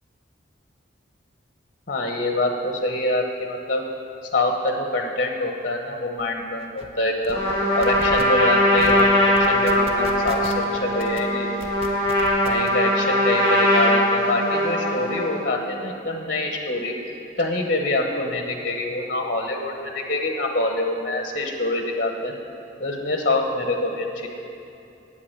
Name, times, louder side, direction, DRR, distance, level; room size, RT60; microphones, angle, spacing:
voice 1, 1.9-3.9 4.3-7.4 7.7-11.5 12.4-16.9 17.4-22.3 22.8-24.3, left 2 dB, 45° left, 2 dB, 1.0 m, -25 dB
sound 1, 6.2-6.3 6.6-6.9 7.2-7.5 7.8-8.2 8.8-9.0 9.3-10.6 11.0-11.2 11.6-12.7, right 1 dB, 30° right, 0.8 m, -36 dB
Trumpet, 7.3-15.4, left 1 dB, 55° right, 2.4 m, -21 dB
8.5 x 8.1 x 8.6 m, 2.8 s
head